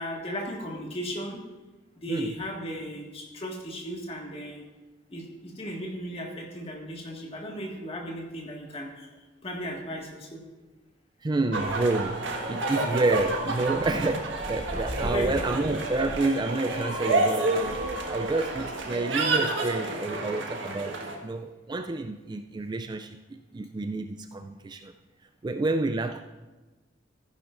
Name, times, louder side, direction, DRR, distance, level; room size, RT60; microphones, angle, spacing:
voice 1, 0.0-1.4 2.0-4.6 5.1-9.1 9.4-10.4 15.0-15.5, equal, 30° left, 0 dB, 1.8 m, -36 dB
voice 2, 11.2-17.8 18.1-24.9 25.4-26.2, right 2 dB, 25° right, 7 dB, 0.3 m, -29 dB
sound 1, 11.5-21.1, right 2 dB, 70° right, 1.6 m, -29 dB
14.5 x 10.5 x 2.5 m, 1.2 s
head